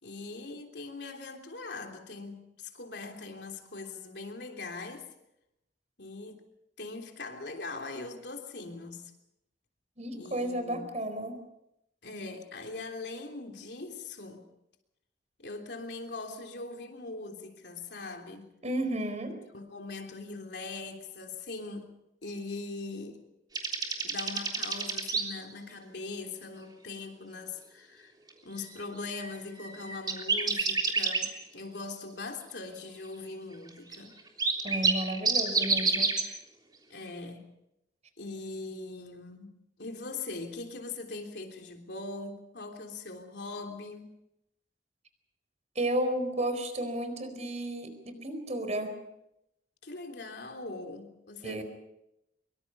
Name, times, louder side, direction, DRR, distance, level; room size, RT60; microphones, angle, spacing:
voice 1, 0.0-5.1 6.0-6.4 6.8-9.1 10.0-10.9 12.0-14.5 15.4-18.5 19.5-21.9 22.2-23.2 24.0-28.1 28.4-34.2 35.6-36.0 36.9-37.5 38.2-39.5 39.8-44.1 49.8-51.6, left 3 dB, 75° left, 3.4 m, -41 dB
voice 2, 10.0-11.4 18.6-19.3 34.6-36.1 45.7-48.9 51.4-51.6, right 1 dB, 40° right, 4.5 m, -32 dB
sound 1, 23.5-25.2 28.6-28.7 29.0-31.3 33.9-34.0 34.3-36.2, right 4 dB, 25° right, 3.4 m, -28 dB
24.5 x 23.5 x 5.5 m
head